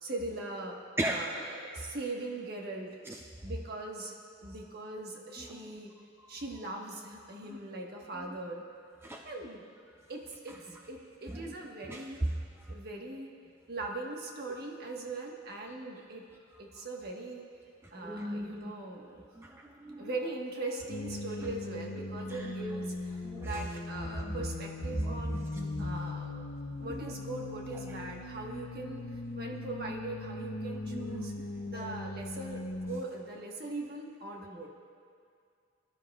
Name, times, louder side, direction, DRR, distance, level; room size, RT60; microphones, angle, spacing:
voice 1, 0.0-0.8 1.0-3.0 3.4-4.1 4.4-5.9 6.3-8.6 9.2-9.6 10.1-10.6 10.9-12.3 12.7-13.3 13.7-16.3 16.6-17.5 17.9-19.3 20.0-25.5 25.8-26.4 26.8-29.0 29.3-31.3 31.6-34.7, right 2 dB, 50° right, 0 dB, 1.3 m, -40 dB
voice 2, 18.0-18.7 19.4-20.1 22.3-22.4 23.2-23.6 24.2-24.3 25.0-26.0 26.8-26.9 30.9-31.2, right 1 dB, 10° right, 0 dB, 0.5 m, -36 dB
sound 1, 20.9-33.0, left 2 dB, 65° left, 0.7 m, -40 dB
21.0 x 12.0 x 2.4 m, 2.3 s
head